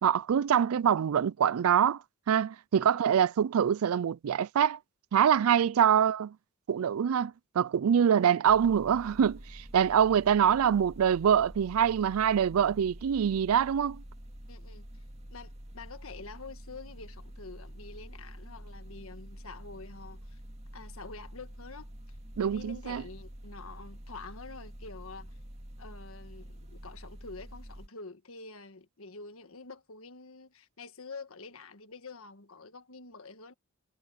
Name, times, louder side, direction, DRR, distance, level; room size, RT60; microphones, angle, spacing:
voice 1, 0.0-2.0 2.3-4.8 5.1-6.3 6.7-14.0 22.4-23.0, right 8 dB, 75° right, 0.4 m, -25 dB
sound 1, 8.5-27.9, equal, 30° right, 2.3 m, -47 dB
voice 2, 14.5-14.8 15.3-20.4 20.7-25.3 25.8-33.5, left 3 dB, 70° left, 1.6 m, -47 dB
head